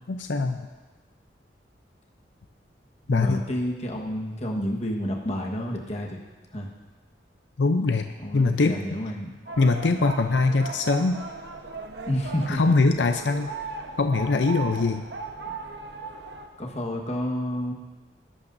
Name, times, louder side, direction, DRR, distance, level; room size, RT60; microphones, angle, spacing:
voice 1, 0.1-0.6 3.1-3.4 7.6-8.1 8.3-8.8 9.6-11.2 12.5-13.5 14.0-15.0, left 3 dB, 85° left, 7 dB, 0.6 m, -22 dB
voice 2, 3.0-6.2 6.5-6.7 8.2-9.3 12.0-12.8 16.6-17.7, equal, 40° left, 0 dB, 1.4 m, -30 dB
sound 1, 9.5-16.5, right 3 dB, 70° right, 1.1 m, -37 dB
19.0 x 11.5 x 2.7 m, 1.3 s
head